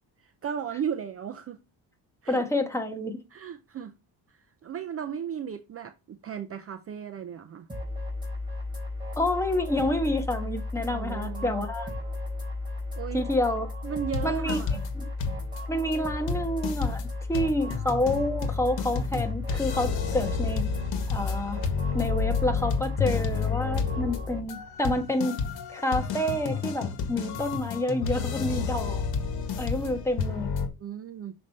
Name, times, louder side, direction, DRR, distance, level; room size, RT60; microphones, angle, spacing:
voice 1, 0.2-1.6 2.2-2.4 3.3-3.9 4.6-7.7 10.9-11.7 13.0-13.3 13.8-14.8 30.6-31.3, right 8 dB, 35° right, 0.6 m, -35 dB
voice 2, 2.3-3.2 9.2-11.9 13.1-13.7 14.2-14.6 15.7-20.7 21.1-21.6 21.9-25.4 25.7-29.0 29.6-30.5, left 1 dB, 5° left, 1.3 m, -28 dB
sound 1, 7.7-24.4, left 2 dB, 10° right, 3.6 m, -34 dB
sound 2, 14.1-14.9 15.2-15.6 15.9-16.0 16.3-30.7, left 6 dB, 60° left, 1.9 m, -31 dB
6.6 x 5.0 x 4.1 m
cardioid pair, 135°, 42 cm